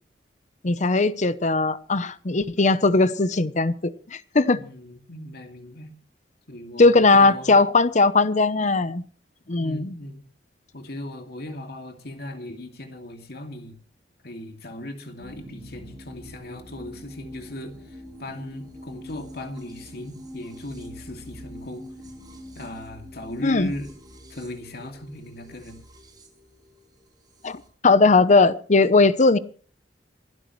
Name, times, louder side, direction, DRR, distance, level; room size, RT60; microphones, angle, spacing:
voice 1, 0.6-4.6 6.8-9.0 9.5-10.0 23.4-23.7 27.4-29.4, left 3 dB, 45° left, 0.8 m, -19 dB
voice 2, 4.5-5.9 6.5-7.5 9.6-10.2 10.7-13.8 14.2-21.9 22.5-23.9 24.3-25.8, left 1 dB, 60° left, 2.5 m, -37 dB
sound 1, 15.2-27.7, equal, 25° right, 5.3 m, -44 dB
27.0 x 12.0 x 3.2 m
head